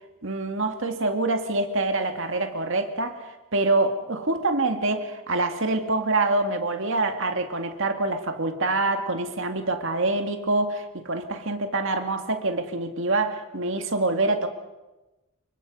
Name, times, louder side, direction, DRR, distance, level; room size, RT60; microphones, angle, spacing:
voice 1, 0.2-14.5, right 2 dB, 60° right, 5 dB, 2.2 m, -25 dB
26.0 x 24.0 x 5.5 m, 1.1 s
head